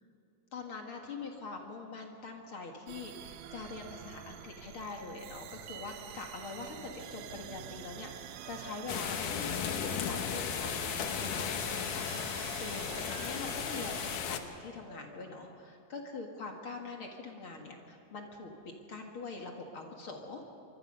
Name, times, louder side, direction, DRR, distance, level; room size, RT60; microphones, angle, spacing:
voice 1, 0.5-20.4, left 3 dB, 45° left, 2 dB, 2.1 m, -44 dB
sound 1, 2.9-14.2, right 11 dB, 75° right, 1.7 m, -46 dB
sound 2, 8.5-8.6 9.5-9.7 10.6-10.8 11.7-11.8 12.7-12.9 13.8-14.0 14.9-15.0 16.0-16.1, right 5 dB, 35° right, 4.5 m, -52 dB
sound 3, 8.9-14.4, left 8 dB, 70° left, 2.5 m, -35 dB
26.0 x 24.0 x 5.5 m, 2.6 s
omnidirectional pair, 4.0 m